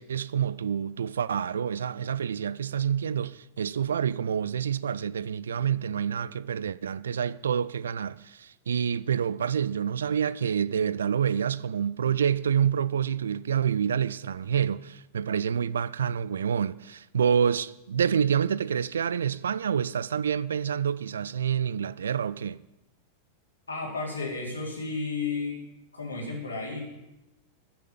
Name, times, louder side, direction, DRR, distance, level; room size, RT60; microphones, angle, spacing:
voice 1, 0.0-22.6, right 8 dB, 65° right, 0.4 m, -27 dB
voice 2, 23.7-25.6 25.9-26.9, left 4 dB, 80° left, 4.0 m, -33 dB
13.0 x 7.0 x 9.2 m
figure-of-eight pair, 90°, 0 cm